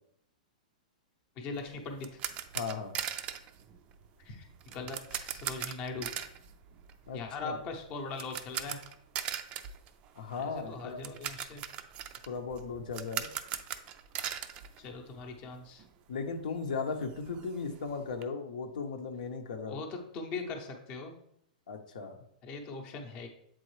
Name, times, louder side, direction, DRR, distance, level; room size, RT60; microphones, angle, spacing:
voice 1, 1.4-2.2 4.2-4.5 4.7-6.1 7.1-8.8 10.4-11.6 14.8-15.8 19.6-21.2 22.4-23.3, left 3 dB, 30° left, 2 dB, 0.8 m, -40 dB
sound 1, 1.6-15.5 15.8-15.9 16.3-16.4 16.7-18.2, right 10 dB, 25° right, 0.4 m, -40 dB
voice 2, 2.5-2.9 7.1-7.6 10.2-11.1 12.3-13.3 16.1-19.8 21.7-22.2, left 4 dB, 75° left, 4 dB, 0.9 m, -37 dB
7.8 x 3.8 x 3.2 m, 0.72 s
hypercardioid pair, 155°, 4 cm